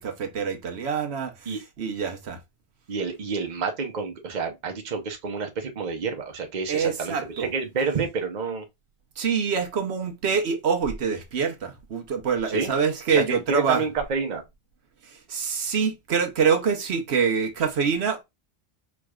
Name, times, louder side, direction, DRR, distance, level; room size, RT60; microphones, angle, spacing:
voice 1, 0.0-2.4 6.7-7.5 9.2-13.8 15.0-18.2, right 6 dB, 90° right, 1.2 m, -25 dB
voice 2, 2.9-8.6 12.5-12.7 13.1-14.4, right 5 dB, 45° right, 0.9 m, -29 dB
4.7 x 3.2 x 2.3 m
omnidirectional pair, 1.1 m